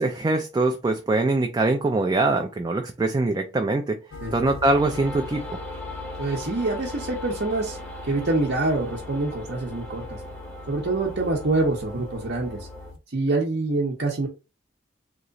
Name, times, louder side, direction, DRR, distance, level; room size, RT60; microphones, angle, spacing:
voice 1, 0.0-4.0 4.3-5.6, right 2 dB, 20° right, 0.3 m, -23 dB
sound 1, 4.1-13.0, left 3 dB, 85° left, 0.5 m, -40 dB
sound 2, 4.8-12.9, left 1 dB, 5° left, 0.7 m, -40 dB
voice 2, 6.2-7.8 8.1-10.2 10.7-12.7 13.1-14.3, right 2 dB, 55° right, 0.7 m, -25 dB
3.0 x 2.4 x 3.8 m
head